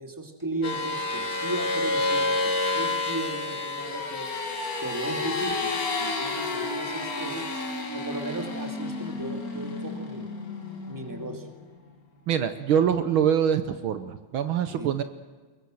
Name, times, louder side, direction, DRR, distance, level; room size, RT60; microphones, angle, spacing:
voice 1, 0.0-4.3 4.8-5.7 6.0-7.5 7.9-10.3 10.9-11.5 14.7-14.9, right 2 dB, 10° right, 4 dB, 2.3 m, -36 dB
sound 1, 0.6-11.5, left 2 dB, 40° left, 2.5 m, -30 dB
voice 2, 12.3-15.0, right 8 dB, 70° right, 10 dB, 1.7 m, -24 dB
22.0 x 21.5 x 7.8 m, 1.4 s
omnidirectional pair, 2.4 m